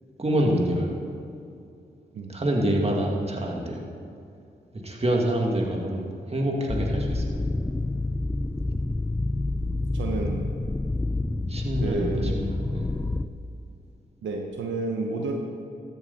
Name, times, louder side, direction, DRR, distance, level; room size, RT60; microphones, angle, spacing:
voice 1, 0.2-0.9 2.3-3.8 4.7-7.3 11.5-12.9, right 1 dB, 35° right, -1 dB, 2.2 m, -26 dB
sound 1, 6.7-13.3, left 2 dB, 10° left, 0.5 m, -28 dB
voice 2, 9.9-10.5 11.8-12.4 14.2-15.3, right 3 dB, 80° right, 2 dB, 0.9 m, -30 dB
13.5 x 8.0 x 4.2 m, 2.5 s
supercardioid pair, 50°, 19 cm